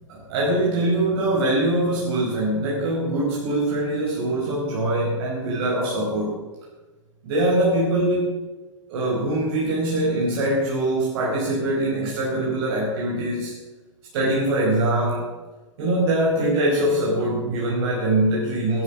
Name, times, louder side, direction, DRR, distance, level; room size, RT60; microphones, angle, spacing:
voice 1, 0.1-6.4 7.2-8.4 8.9-13.6 14.1-15.3 15.8-18.8, right 1 dB, 50° right, -4 dB, 5.2 m, -23 dB
17.0 x 12.5 x 6.4 m, 1.2 s
figure-of-eight pair, 95°, 16 cm